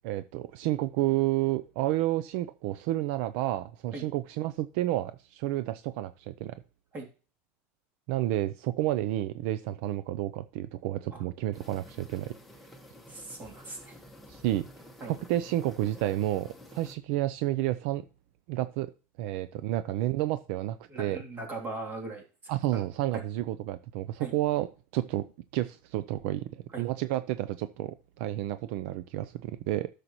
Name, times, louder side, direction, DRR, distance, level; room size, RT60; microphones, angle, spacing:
voice 1, 0.0-6.5 8.1-12.3 14.3-14.7 15.0-18.0 18.5-18.9 19.2-21.2 22.5-24.7 24.9-25.2 25.5-29.9, right 14 dB, 65° right, 12 dB, 0.6 m, -30 dB
sound 1, 11.5-16.9, left 1 dB, ahead, 1.4 m, -51 dB
voice 2, 13.1-13.9 15.0-15.2 20.9-22.2 22.7-22.8 23.1-23.2 24.2-24.4 26.7-26.9, right 2 dB, 25° right, 0 dB, 2.8 m, -39 dB
13.5 x 6.7 x 3.0 m, 0.36 s
cardioid pair, 160°, 7 cm